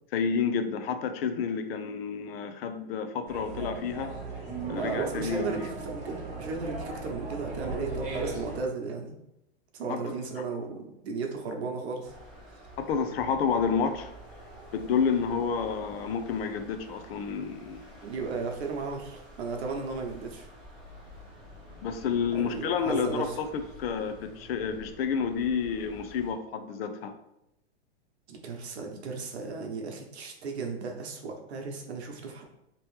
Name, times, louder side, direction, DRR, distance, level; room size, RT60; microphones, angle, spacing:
voice 1, 0.1-4.1 4.7-5.6 9.9-10.0 12.8-14.1 14.7-17.9 21.8-23.3 23.5-27.1, left 6 dB, 70° left, 8 dB, 0.5 m, -30 dB
sound 1, 3.2-8.6, right 3 dB, 25° right, 0.9 m, -36 dB
voice 2, 4.7-9.1 9.7-12.1 18.0-20.5 22.3-23.4 28.3-32.4, right 4 dB, 85° right, 3 dB, 0.9 m, -35 dB
sound 2, 12.0-26.3, equal, ahead, 1.0 m, -49 dB
3.0 x 2.9 x 3.2 m, 0.85 s
supercardioid pair, 150°, 32 cm